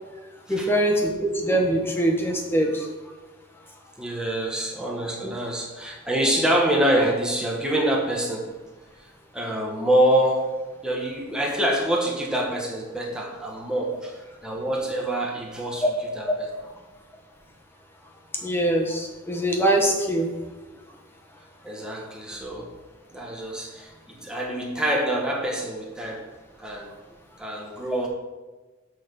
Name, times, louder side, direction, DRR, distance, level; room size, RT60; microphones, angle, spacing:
voice 1, 0.5-2.9 5.2-5.3 15.8-15.9 18.4-20.3, right 1 dB, 10° left, 0 dB, 1.1 m, -23 dB
voice 2, 4.0-8.5 9.3-10.5 10.8-15.8 16.1-16.4 21.6-22.7 23.1-26.2 26.6-26.9 27.4-28.1, right 1 dB, 5° right, -2 dB, 1.3 m, -25 dB
6.4 x 5.3 x 6.7 m, 1.2 s
head